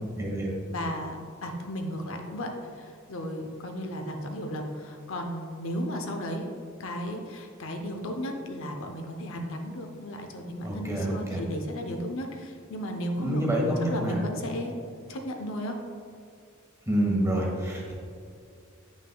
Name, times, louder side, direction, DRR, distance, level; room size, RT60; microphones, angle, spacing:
voice 1, 0.1-0.5 10.6-11.4 13.2-14.2 16.9-17.9, right 1 dB, 15° right, -2 dB, 1.3 m, -27 dB
voice 2, 0.7-2.5 2.8-6.5 6.8-14.7 15.1-15.8, equal, 65° left, 3 dB, 0.7 m, -34 dB
8.7 x 6.1 x 2.3 m, 2.3 s
head